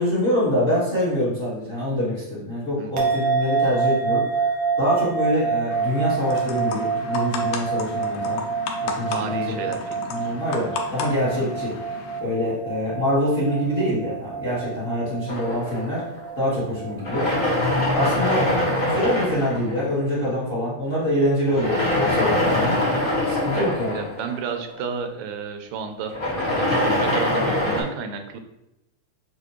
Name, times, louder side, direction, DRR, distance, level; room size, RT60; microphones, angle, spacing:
voice 1, 0.0-8.4 8.8-9.8 10.1-11.7 12.2-16.0 16.4-17.3 17.9-22.8 23.2-24.0, equal, 35° left, -9 dB, 0.8 m, -25 dB
sound 1, 3.0-19.5, right 5 dB, 70° right, 1.3 m, -28 dB
sound 2, 5.7-12.2, left 6 dB, 80° left, 2.0 m, -34 dB
voice 2, 9.1-10.3 23.5-26.1 26.6-28.4, right 5 dB, 85° right, 6 dB, 2.0 m, -32 dB
sound 3, 15.3-16.5 17.0-20.1 21.5-24.9 26.0-27.8, left 1 dB, 60° left, 0.5 m, -23 dB
6.6 x 2.2 x 3.0 m, 0.90 s
omnidirectional pair, 3.4 m